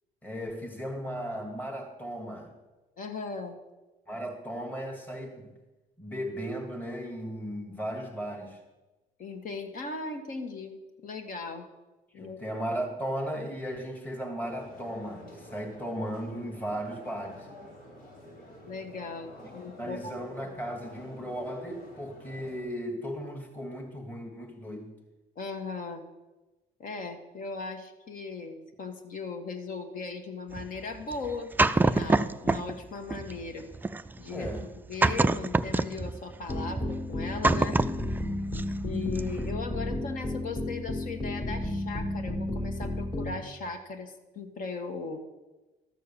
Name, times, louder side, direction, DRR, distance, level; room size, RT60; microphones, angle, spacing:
voice 1, 0.2-2.6 4.1-5.6 6.0-8.6 12.1-17.5 19.8-25.0 34.3-34.7, equal, 10° left, 1 dB, 1.5 m, -36 dB
voice 2, 3.0-3.6 9.2-10.8 11.0-11.7 12.1-12.4 18.6-20.2 25.3-26.0 26.8-33.7 34.2-37.8 38.8-45.2, left 4 dB, 55° left, 6 dB, 1.6 m, -38 dB
sound 1, 14.4-22.6, left 1 dB, 85° left, 3.1 m, -49 dB
sound 2, 30.5-32.8 33.1-38.9 39.2-39.5, right 2 dB, 10° right, 0.3 m, -27 dB
sound 3, 36.5-43.3, left 1 dB, 25° left, 1.8 m, -33 dB
13.0 x 6.7 x 6.9 m, 1.1 s
cardioid pair, 110°, 17 cm